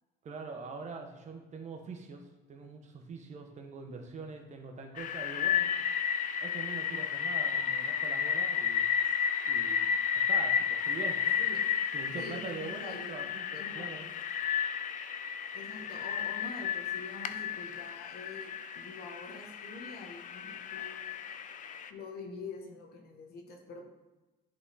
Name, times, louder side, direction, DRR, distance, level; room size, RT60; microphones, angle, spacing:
voice 1, 0.2-5.7 6.4-8.8 9.4-11.2 11.9-14.1, right 4 dB, 45° right, 4 dB, 1.1 m, -44 dB
sound 1, 5.0-21.9, left 8 dB, 50° left, 0.5 m, -32 dB
voice 2, 12.1-14.1 15.5-21.1 21.9-23.9, left 3 dB, 70° left, 2 dB, 1.4 m, -46 dB
10.5 x 3.8 x 4.2 m, 1.1 s
cardioid pair, 110°, 17 cm